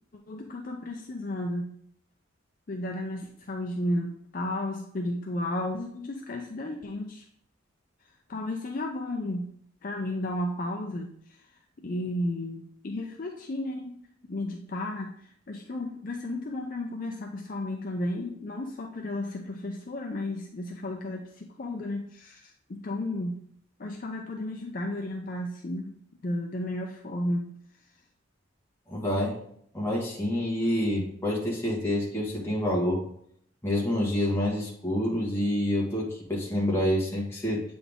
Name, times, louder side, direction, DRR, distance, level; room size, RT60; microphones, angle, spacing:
voice 1, 0.3-1.7 2.7-7.3 8.3-9.5 9.8-11.4 11.8-14.0 14.3-23.4 23.8-26.0 26.2-27.5, left 1 dB, 45° left, 2 dB, 0.5 m, -33 dB
voice 2, 28.9-29.3 29.7-33.0 33.6-37.6, left 1 dB, 10° left, -5 dB, 1.7 m, -27 dB
8.0 x 3.9 x 3.6 m, 0.68 s
head